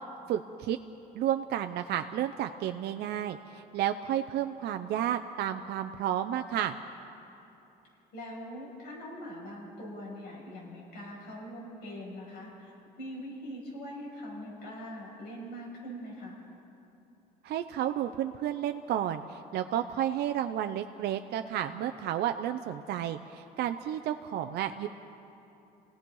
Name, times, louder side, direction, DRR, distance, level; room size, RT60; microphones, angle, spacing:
voice 1, 0.3-0.8 1.1-6.8 17.4-24.9, right 11 dB, 70° right, 6 dB, 0.6 m, -31 dB
voice 2, 8.1-12.7 13.0-16.4, equal, 85° left, -3 dB, 6.4 m, -42 dB
28.5 x 17.5 x 5.5 m, 2.9 s
cardioid pair, 110°, 17 cm